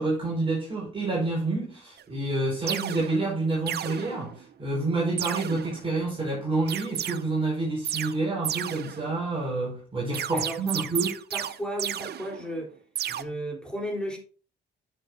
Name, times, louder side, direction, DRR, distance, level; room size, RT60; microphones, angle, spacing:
voice 1, 0.0-11.1, right 2 dB, 25° right, 4.9 m, -28 dB
sound 1, 2.0-2.1 2.7-3.3 3.7-4.5 5.2-6.0 6.7-7.2 7.8-8.2 8.4-9.3 10.1-12.7 13.0-13.2, right 10 dB, 55° right, 0.6 m, -33 dB
voice 2, 10.3-10.8 11.3-12.8 13.1-14.2, equal, 5° left, 4.1 m, -34 dB
11.0 x 6.7 x 2.8 m
cardioid pair, 90°, 20 cm